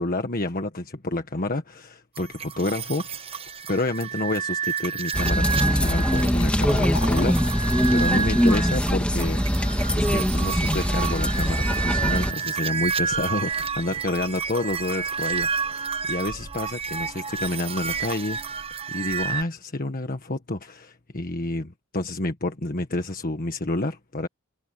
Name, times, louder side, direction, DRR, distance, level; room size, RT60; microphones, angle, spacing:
voice 1, 0.0-3.2 3.7-9.4 9.9-18.5 18.9-24.3, left 2 dB, 45° left, 1.5 m, -29 dB
sound 1, 2.2-19.4, right 6 dB, 30° right, 1.0 m, -30 dB
sound 2, 5.1-12.3, equal, 5° left, 2.0 m, -22 dB
Fill (with liquid), 5.8-13.2, left 4 dB, 80° left, 6.5 m, -41 dB
head